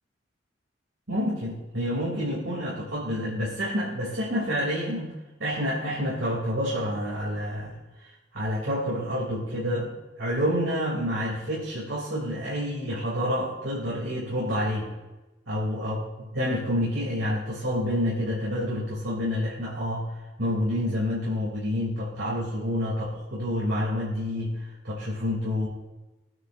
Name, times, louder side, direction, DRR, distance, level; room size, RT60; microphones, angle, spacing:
voice 1, 1.1-5.1 5.4-7.7 8.0-9.9 10.2-14.9 15.5-20.1 20.4-25.7, equal, 80° right, -7 dB, 3.2 m, -28 dB
21.5 x 9.5 x 2.7 m, 1.1 s
head